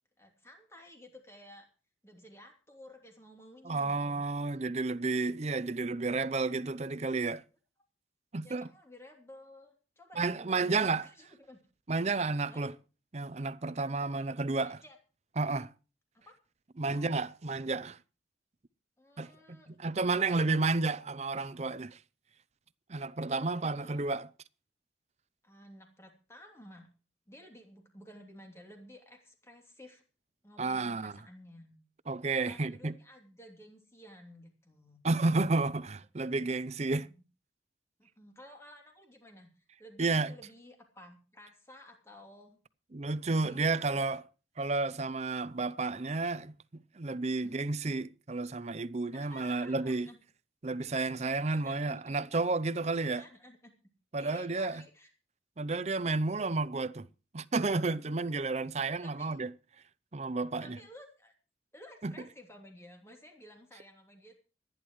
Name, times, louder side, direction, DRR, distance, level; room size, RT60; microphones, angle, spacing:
voice 1, 0.2-1.7 2.0-4.3 8.4-11.6 12.5-12.7 14.0-14.2 14.6-15.0 16.1-16.3 16.9-17.1 19.0-19.8 20.2-20.7 23.6-24.1 25.4-26.9 27.3-30.0 30.4-31.8 32.2-35.0 37.0-37.2 38.0-42.6 43.2-44.0 47.4-47.6 49.1-50.2 51.3-52.1 53.0-53.7 54.2-55.1 57.8-57.9 58.3-58.4 59.0-59.4 60.6-61.3 61.7-64.3, left 1 dB, 15° left, 2.9 m, -54 dB
voice 2, 3.6-7.4 8.3-8.7 10.2-11.1 11.9-12.7 13.1-14.8 15.4-15.7 16.8-18.0 19.2-19.3 19.8-22.0 22.9-24.3 30.6-31.2 32.1-32.9 35.0-37.1 40.0-40.3 42.9-44.2 44.6-46.5 47.0-50.1 50.6-53.2 54.1-54.8 55.6-57.1 57.3-59.5 60.1-60.8 62.0-62.1, right 3 dB, 35° right, 0.6 m, -31 dB
25.0 x 10.5 x 3.1 m
head